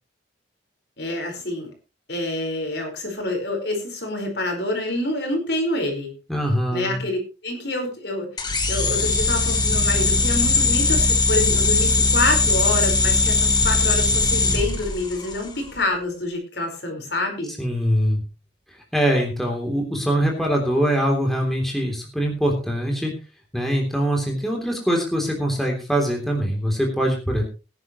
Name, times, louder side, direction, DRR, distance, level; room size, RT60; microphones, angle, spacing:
voice 1, 1.0-1.7 2.1-6.1 6.7-8.3 8.7-17.5, left 2 dB, 60° left, 3 dB, 4.9 m, -27 dB
voice 2, 6.3-7.0 17.6-18.2 18.9-23.1 23.5-27.4, equal, ahead, 0 dB, 3.2 m, -23 dB
Remote Control Helecopter, 8.4-15.5, left 3 dB, 20° left, 1.9 m, -20 dB
20.0 x 10.5 x 3.1 m, 0.31 s
head